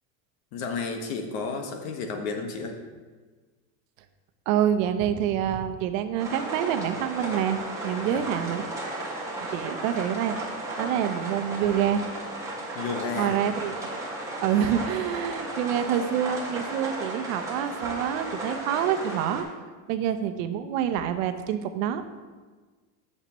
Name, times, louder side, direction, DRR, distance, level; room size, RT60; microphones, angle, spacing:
voice 1, 0.5-2.8 8.1-8.3 12.7-13.4, left 4 dB, 75° left, 4 dB, 1.6 m, -32 dB
voice 2, 4.5-8.6 9.5-10.4 10.8-12.0 13.2-13.9 14.4-19.5 19.9-22.0, right 9 dB, 70° right, 9 dB, 0.9 m, -27 dB
sound 1, 6.2-19.4, right 2 dB, 10° right, 1.9 m, -34 dB
14.5 x 6.6 x 3.1 m, 1.4 s
supercardioid pair, 140°, 41 cm